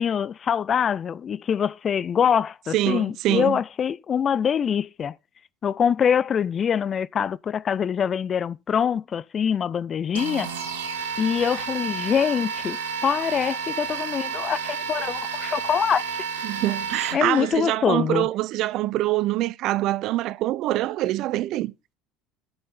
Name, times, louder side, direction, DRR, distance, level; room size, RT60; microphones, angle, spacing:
voice 1, 0.0-5.2 5.6-10.5 11.2-16.0 17.1-18.3, left 7 dB, 40° left, 0.4 m, -24 dB
voice 2, 2.7-3.6 16.4-21.7, right 16 dB, 55° right, 0.5 m, -25 dB
sound 1, 10.1-17.5, right 6 dB, 75° right, 1.5 m, -31 dB
10.5 x 5.5 x 5.5 m
hypercardioid pair, 70°, 0 cm